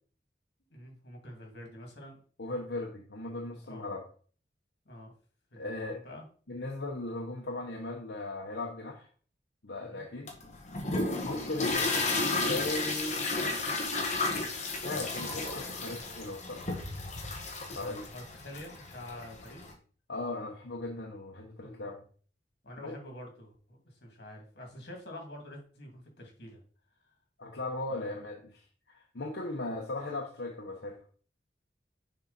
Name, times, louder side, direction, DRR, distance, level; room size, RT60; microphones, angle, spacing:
voice 1, 0.7-2.2 3.6-3.9 4.9-5.1 5.5-6.2 9.8-10.0 11.1-11.3 11.7-12.4 17.8-19.7 21.6-21.9 22.6-26.6 27.9-28.2, left 1 dB, 70° left, 1 dB, 2.5 m, -47 dB
voice 2, 2.4-4.0 5.6-6.0 6.5-9.1 9.6-10.3 11.2-12.0 12.4-13.2 14.8-16.8 17.7-18.0 20.1-22.0 22.8-22.9 27.4-31.0, left 2 dB, 90° left, 0 dB, 1.1 m, -38 dB
sound 1, 10.3-19.7, left 2 dB, 40° left, 1.5 m, -33 dB
6.8 x 4.8 x 4.2 m, 0.43 s
head